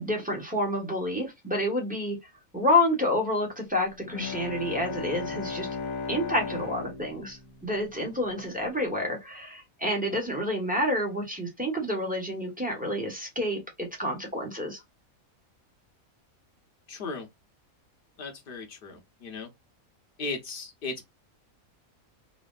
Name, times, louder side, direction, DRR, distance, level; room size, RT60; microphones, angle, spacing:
voice 1, 0.0-2.2 2.5-5.7 6.1-14.8, left 1 dB, 5° right, 0.8 m, -29 dB
Bowed string instrument, 4.0-8.5, left 5 dB, 85° left, 1.1 m, -36 dB
voice 2, 16.9-17.3 18.2-19.5 20.2-21.0, left 3 dB, 45° left, 0.9 m, -36 dB
4.1 x 2.0 x 2.3 m
omnidirectional pair, 1.5 m